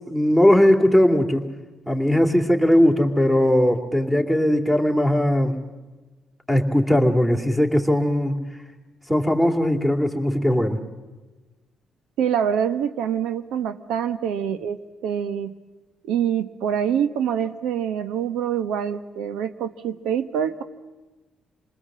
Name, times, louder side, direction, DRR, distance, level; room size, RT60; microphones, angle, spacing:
voice 1, 0.1-1.5 1.9-5.6 6.5-8.4 9.1-10.8, left 1 dB, 10° right, 4 dB, 2.7 m, -19 dB
voice 2, 12.2-15.5 16.1-20.6, right 8 dB, 90° right, 12 dB, 1.1 m, -25 dB
27.5 x 20.5 x 7.4 m, 1.2 s
cardioid pair, 90°, 0 cm